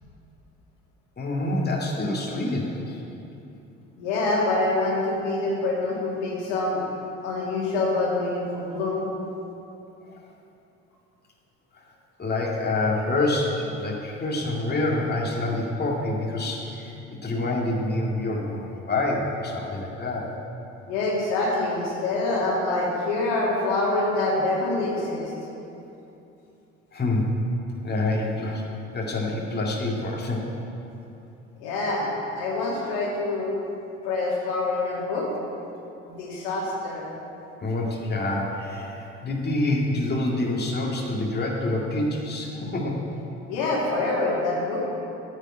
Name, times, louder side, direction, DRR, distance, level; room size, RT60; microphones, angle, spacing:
voice 1, 1.2-3.0 12.2-20.3 26.9-27.4 27.8-28.6 28.9-30.5 37.6-43.0, left 2 dB, 25° left, -2 dB, 2.1 m, -27 dB
voice 2, 4.0-6.8 7.2-9.1 20.9-25.3 31.6-33.5 34.0-35.3 36.0-37.1 43.5-44.9, left 2 dB, 75° left, -4 dB, 2.5 m, -26 dB
9.1 x 7.2 x 8.6 m, 2.9 s
hypercardioid pair, 60°, 36 cm